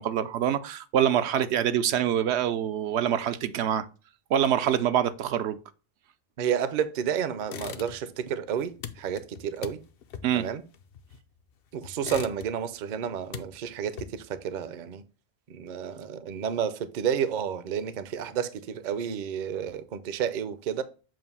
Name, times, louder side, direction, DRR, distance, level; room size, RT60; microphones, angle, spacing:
voice 1, 0.0-3.9 4.3-5.6 10.2-10.5, right 9 dB, 80° right, 0.8 m, -25 dB
voice 2, 6.4-9.8 10.3-10.6 11.7-15.0 15.5-20.8, right 8 dB, 55° right, 0.6 m, -31 dB
sound 1, 7.4-8.2 8.5-11.4 11.8-12.8 13.1-14.4, left 8 dB, 65° left, 0.8 m, -41 dB
7.5 x 2.5 x 5.4 m
omnidirectional pair, 1.1 m